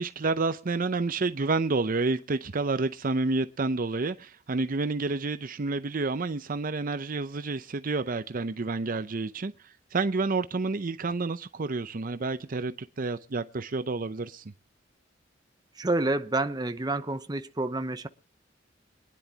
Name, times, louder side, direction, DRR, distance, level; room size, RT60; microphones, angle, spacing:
voice 1, 0.0-14.4, right 3 dB, 45° right, 0.6 m, -29 dB
voice 2, 15.8-18.1, right 2 dB, 20° right, 0.8 m, -28 dB
25.0 x 10.5 x 2.8 m
head